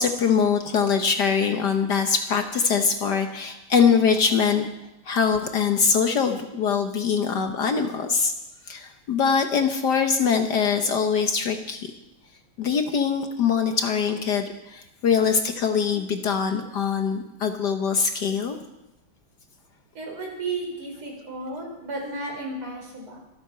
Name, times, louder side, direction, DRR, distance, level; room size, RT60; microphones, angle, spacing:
voice 1, 0.0-4.7 5.1-8.3 8.7-11.9 12.6-18.6, left 6 dB, 55° left, 6 dB, 1.4 m, -23 dB
voice 2, 20.0-23.2, right 2 dB, 75° right, -1 dB, 5.4 m, -33 dB
25.5 x 8.7 x 5.6 m, 0.91 s
omnidirectional pair, 2.4 m